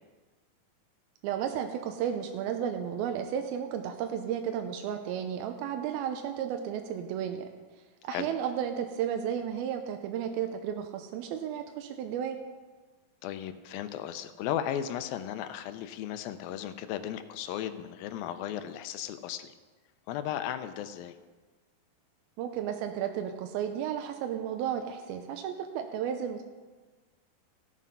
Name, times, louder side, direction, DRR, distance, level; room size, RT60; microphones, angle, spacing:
voice 1, 1.2-7.5 8.0-12.4 22.4-26.4, right 9 dB, 90° right, 6 dB, 2.5 m, -33 dB
voice 2, 13.2-19.5 20.1-21.2, left 10 dB, 80° left, 10 dB, 2.3 m, -35 dB
16.0 x 7.4 x 5.5 m, 1.3 s
omnidirectional pair, 4.3 m